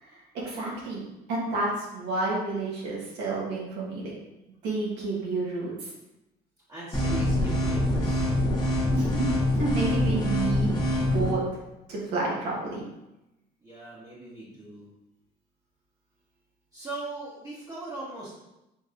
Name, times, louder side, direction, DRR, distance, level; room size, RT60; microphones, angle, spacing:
voice 1, 0.4-4.1 4.6-5.7 8.9-11.4 11.9-12.9, right 3 dB, 85° right, -4 dB, 1.2 m, -30 dB
voice 2, 6.7-8.3 13.6-14.9 16.7-18.3, right 2 dB, 20° right, -9 dB, 1.1 m, -39 dB
sound 1, 6.9-11.3, left 1 dB, 25° left, 1.3 m, -25 dB
5.1 x 3.4 x 2.5 m, 0.92 s
cardioid pair, 110°, 17 cm